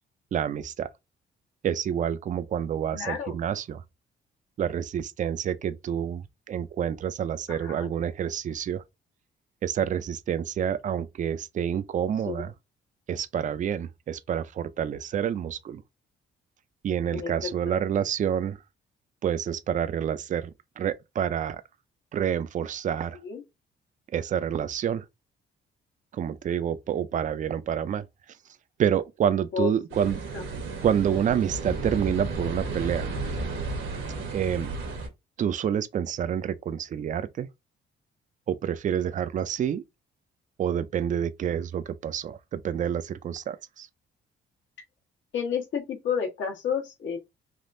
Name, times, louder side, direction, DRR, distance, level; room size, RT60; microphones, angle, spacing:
voice 1, 0.3-0.9 1.6-3.8 4.6-8.8 9.6-12.5 13.1-15.8 16.8-18.6 19.2-21.6 22.1-23.2 24.1-25.0 26.1-28.1 28.8-30.2 30.8-33.1 34.3-34.8 35.4-37.5 38.5-39.8 40.6-43.9, right 9 dB, 40° right, 0.4 m, -28 dB
voice 2, 2.9-3.4 7.5-7.9 12.3-12.4 17.1-17.5 23.1-23.4 29.5-29.7 30.3-30.4 45.3-47.2, left 7 dB, 70° left, 1.2 m, -31 dB
sound 1, 29.9-35.1, right 3 dB, 80° right, 1.1 m, -33 dB
3.5 x 2.4 x 2.5 m
cardioid pair, 90°, 20 cm